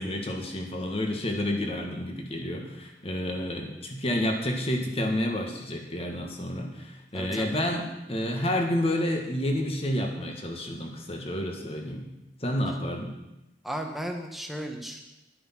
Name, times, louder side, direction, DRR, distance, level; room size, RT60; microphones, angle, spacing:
voice 1, 0.0-12.1 12.4-13.2, left 1 dB, 30° left, 3 dB, 1.7 m, -30 dB
voice 2, 7.1-7.5 13.6-15.0, equal, ahead, 2 dB, 1.2 m, -35 dB
11.5 x 9.8 x 6.0 m, 0.94 s
head